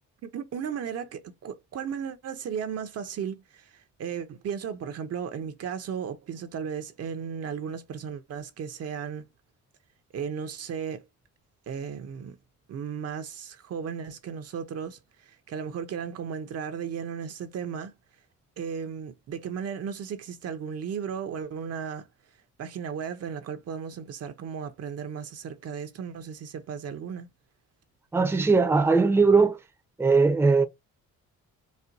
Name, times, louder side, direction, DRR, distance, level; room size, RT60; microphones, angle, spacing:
voice 1, 0.2-9.3 10.1-11.0 11.7-12.4 12.7-17.9 18.6-22.1 22.6-27.3, right 7 dB, 55° right, 0.7 m, -35 dB
voice 2, 28.1-29.6 30.0-30.6, right 4 dB, 10° right, 0.6 m, -20 dB
4.2 x 2.2 x 2.5 m
cardioid pair, 90°, 30 cm